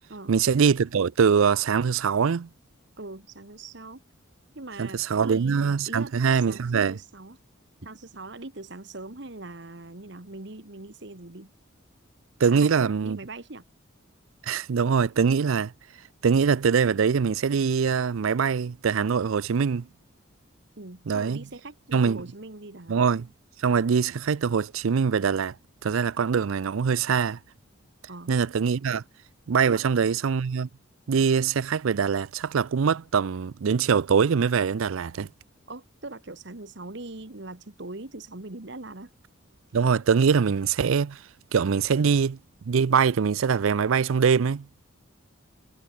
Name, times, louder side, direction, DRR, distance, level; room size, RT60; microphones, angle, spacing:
voice 1, 0.3-2.5 4.8-7.0 12.4-13.2 14.4-15.7 16.2-19.9 21.1-21.4 21.9-22.2 22.9-23.2 23.6-25.6 25.8-27.4 28.3-29.0 29.5-30.7 31.1-35.3 39.7-41.2 41.5-42.4 42.7-44.8, right 6 dB, 75° right, 0.5 m, -23 dB
voice 2, 3.0-4.0 4.5-7.4 7.8-11.5 12.5-13.6 20.8-23.1 28.1-28.3 29.6-29.9 35.7-39.1, right 2 dB, 55° right, 1.6 m, -41 dB
head